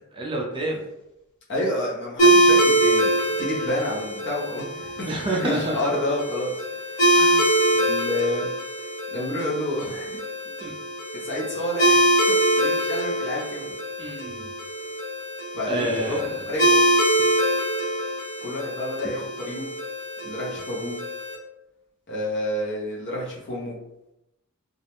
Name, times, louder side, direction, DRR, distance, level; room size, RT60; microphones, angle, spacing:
voice 1, 0.1-0.8 5.1-5.7 7.1-7.6 10.6-10.7 14.0-14.5 15.7-16.3, right 1 dB, 20° right, -2 dB, 0.4 m, -28 dB
voice 2, 1.5-3.1 3.4-5.1 5.4-6.5 6.9-7.2 7.7-8.5 9.1-10.2 11.2-13.7 15.5-16.8 18.4-19.7 20.2-21.0 22.1-23.8, left 1 dB, 55° left, -4 dB, 0.7 m, -29 dB
sound 1, 2.2-21.3, right 1 dB, 80° left, 1.0 m, -23 dB
2.4 x 2.1 x 2.9 m, 0.88 s
head